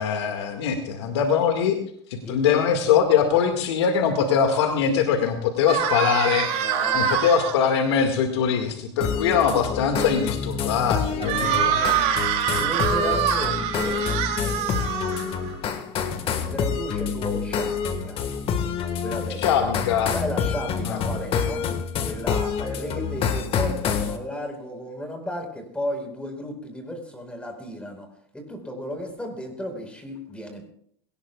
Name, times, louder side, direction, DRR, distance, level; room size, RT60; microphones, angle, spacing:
voice 1, 0.0-1.8 2.1-6.6 6.9-11.8 19.4-20.1 20.8-21.0, left 7 dB, 85° left, 4 dB, 2.0 m, -22 dB
voice 2, 2.2-2.7 6.5-7.3 8.6-8.7 11.1-12.3 12.5-14.1 14.4-15.8 16.3-18.2 19.0-19.7 20.1-21.7 22.0-28.1 28.3-30.6, left 1 dB, 10° left, 4 dB, 4.7 m, -34 dB
sound 1, 5.7-7.5 11.2-15.5, right 8 dB, 55° right, 3.2 m, -24 dB
sound 2, 9.0-24.2, left 6 dB, 40° left, 1.6 m, -27 dB
21.5 x 18.0 x 2.4 m, 0.62 s
supercardioid pair, 105°, 14 cm